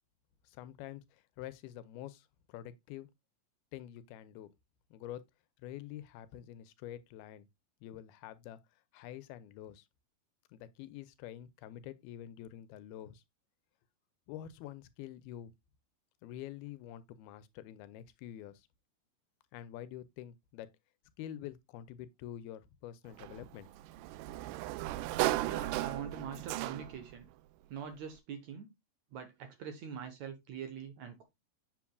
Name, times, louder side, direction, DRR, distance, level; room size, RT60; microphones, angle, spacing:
voice 1, 0.4-3.1 3.7-4.5 4.9-5.2 5.6-7.5 7.8-8.6 8.9-9.9 10.5-13.2 14.3-15.5 16.2-18.7 19.5-20.7 21.2-23.7, left 12 dB, 90° left, 2.7 m, -47 dB
Sliding door, 23.2-27.1, right 17 dB, 90° right, 1.8 m, -35 dB
voice 2, 25.4-27.3 27.7-28.7 29.1-31.2, right 7 dB, 65° right, 2.0 m, -44 dB
7.6 x 7.2 x 2.2 m
omnidirectional pair, 4.3 m